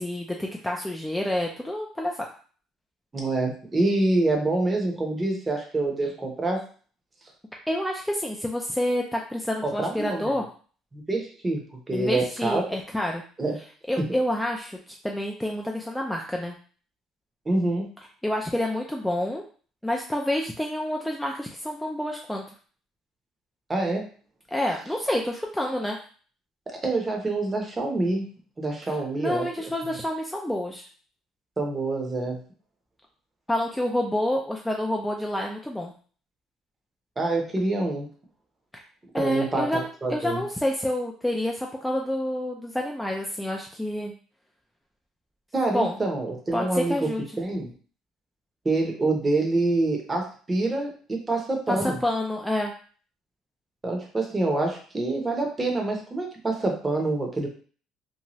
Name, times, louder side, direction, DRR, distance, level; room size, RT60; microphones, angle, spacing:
voice 1, 0.0-2.3 6.0-6.1 7.7-10.4 11.9-13.2 13.9-14.8 15.0-16.5 18.2-19.4 19.8-22.4 24.5-26.0 29.2-30.8 33.5-35.9 39.1-44.1 45.7-46.0 46.5-47.2 51.7-52.7, left 1 dB, 5° left, 0 dB, 0.3 m, -28 dB
voice 2, 3.1-6.6 9.6-10.3 10.9-11.6 11.9-12.6 13.4-13.5 17.5-17.8 23.7-24.0 26.8-28.2 28.6-29.7 31.6-32.4 37.2-38.1 39.2-39.7 40.0-40.4 45.5-47.0 47.4-47.7 48.6-52.0 53.8-57.5, right 2 dB, 20° right, 1 dB, 0.7 m, -26 dB
2.6 x 2.2 x 3.0 m, 0.42 s
cardioid pair, 135°, 0 cm